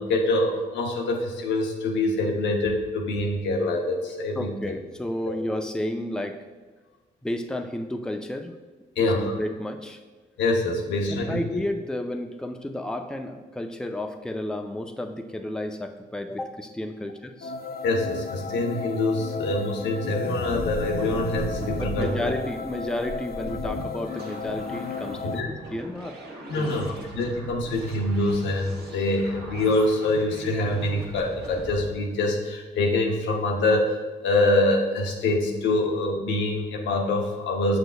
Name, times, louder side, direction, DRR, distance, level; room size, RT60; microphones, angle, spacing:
voice 1, 0.0-4.7 9.0-9.3 10.4-11.4 17.8-22.3 25.2-25.5 26.5-37.8, left 2 dB, 90° left, 0 dB, 0.8 m, -25 dB
voice 2, 4.4-6.4 7.2-8.5 9.0-10.0 11.1-17.5 21.7-25.4 25.7-26.2 26.6-26.9, left 1 dB, 5° left, 5 dB, 0.5 m, -32 dB
sound 1, 17.4-25.4, left 6 dB, 55° left, 0.4 m, -34 dB
sound 2, 20.2-31.8, right 1 dB, 65° right, 1.2 m, -39 dB
6.7 x 6.1 x 2.3 m, 1.3 s
supercardioid pair, 60°, 19 cm